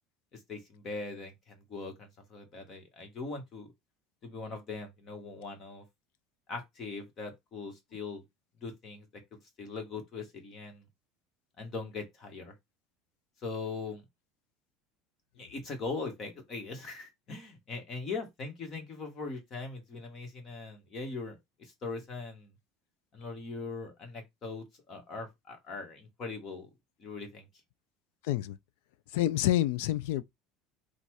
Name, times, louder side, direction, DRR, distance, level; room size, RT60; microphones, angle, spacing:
voice 1, 0.3-3.7 4.2-5.8 6.5-8.2 8.6-9.1 9.6-10.8 11.6-12.5 13.4-14.0 15.4-22.5 23.1-26.7 27.0-27.5, left 3 dB, 30° left, 1.5 m, -40 dB
voice 2, 28.2-28.6 29.1-30.2, left 14 dB, 80° left, 0.4 m, -28 dB
4.1 x 2.5 x 4.7 m
cardioid pair, 160°, 0 cm